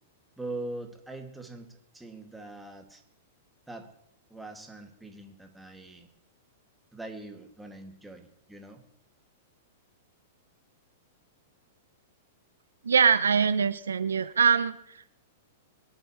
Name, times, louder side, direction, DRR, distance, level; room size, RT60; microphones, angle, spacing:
voice 1, 0.4-3.0 3.7-3.9 4.3-6.1 6.9-8.8, right 2 dB, 5° right, 3 dB, 2.2 m, -42 dB
voice 2, 12.8-14.8, right 6 dB, 80° right, 12 dB, 0.7 m, -23 dB
23.5 x 11.0 x 3.2 m, 0.76 s
hypercardioid pair, 105°, 0 cm